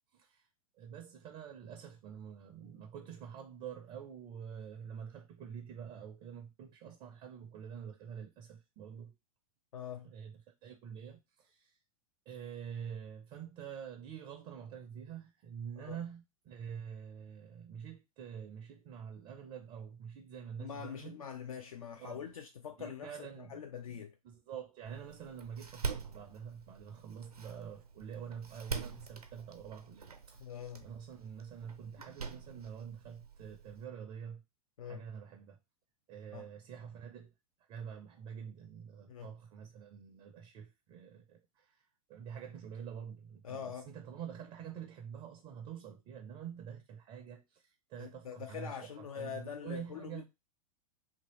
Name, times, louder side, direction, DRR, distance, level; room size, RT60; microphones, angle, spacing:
voice 1, 0.1-0.5 0.8-9.1 10.0-11.8 12.3-21.3 22.0-22.2 22.8-30.4 30.8-34.4 34.8-35.6 36.1-37.3 37.7-41.8 42.1-50.2, right 8 dB, 25° right, 0.4 m, -47 dB
voice 2, 9.7-10.1 15.8-16.0 20.6-24.1 30.4-30.8 34.8-35.0 36.3-36.5 39.1-39.3 43.4-43.9 48.0-50.2, left 8 dB, 70° left, 0.4 m, -44 dB
Door, 24.9-33.8, right 5 dB, 80° right, 0.6 m, -45 dB
2.9 x 2.6 x 2.9 m
figure-of-eight pair, 100°, 19 cm